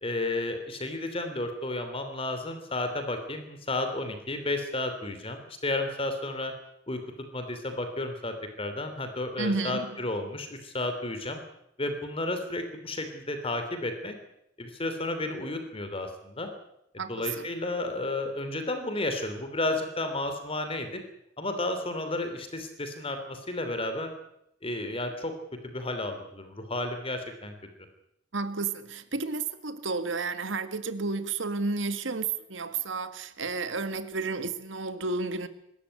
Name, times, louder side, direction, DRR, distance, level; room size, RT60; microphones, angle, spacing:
voice 1, 0.0-6.5 6.9-7.0 7.3-11.4 11.8-14.1 14.6-16.5 17.1-21.0 21.4-24.1 24.6-25.3 25.6-27.5, left 2 dB, 30° left, 7 dB, 3.0 m, -32 dB
voice 2, 9.4-10.0 17.0-17.5 28.3-35.5, right 3 dB, 85° right, 11 dB, 1.7 m, -32 dB
24.5 x 13.5 x 9.8 m, 0.79 s
head